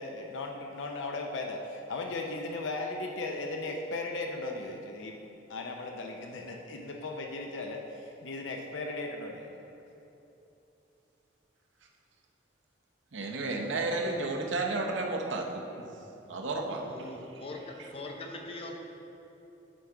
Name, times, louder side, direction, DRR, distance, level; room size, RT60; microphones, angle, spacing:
voice 1, 0.0-5.2 5.5-9.5, left 2 dB, 90° left, 2 dB, 0.5 m, -37 dB
voice 2, 13.1-15.9 16.3-17.1, right 2 dB, 85° right, 1 dB, 0.8 m, -32 dB
voice 3, 16.8-18.8, left 2 dB, 30° left, 1 dB, 0.6 m, -42 dB
8.8 x 4.6 x 3.7 m, 2.9 s
head